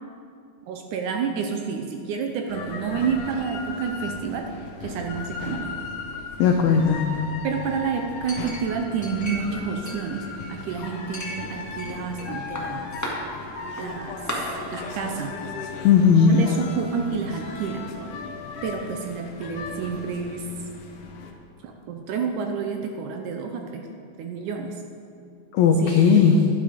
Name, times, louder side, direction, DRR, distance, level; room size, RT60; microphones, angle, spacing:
voice 1, 0.7-5.7 7.4-12.9 13.8-14.2 14.7-15.4 16.4-17.8 18.6-20.4 21.6-23.9 24.2-24.8 25.8-25.9, right 6 dB, 75° right, 3 dB, 2.0 m, -29 dB
sound 1, 2.5-21.3, left 4 dB, 70° left, 2.5 m, -37 dB
voice 2, 6.4-7.1 15.8-16.4 25.5-26.5, left 6 dB, 85° left, 3 dB, 1.6 m, -17 dB
Chink clink, 8.3-9.6 9.9-10.6 11.1-12.3 12.6-13.1 13.8-13.9 14.3-14.4, equal, 15° left, 0.6 m, -35 dB
11.5 x 11.0 x 5.1 m, 2.3 s
omnidirectional pair, 4.2 m